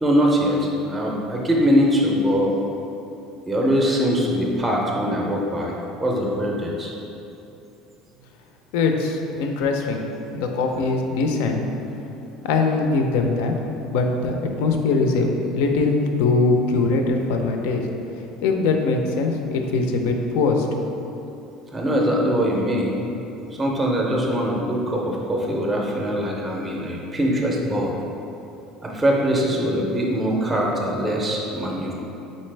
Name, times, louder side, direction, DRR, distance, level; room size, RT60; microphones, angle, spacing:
voice 1, 0.0-2.5 3.5-5.7 6.0-6.9 21.7-23.0 23.5-27.9 28.8-31.9, equal, 10° right, -2 dB, 0.4 m, -22 dB
voice 2, 8.7-11.6 12.4-13.5 13.9-15.3 15.5-17.8 18.4-20.7, left 3 dB, 90° left, 3 dB, 0.5 m, -22 dB
4.2 x 3.9 x 3.2 m, 2.9 s
cardioid pair, 175°, 0 cm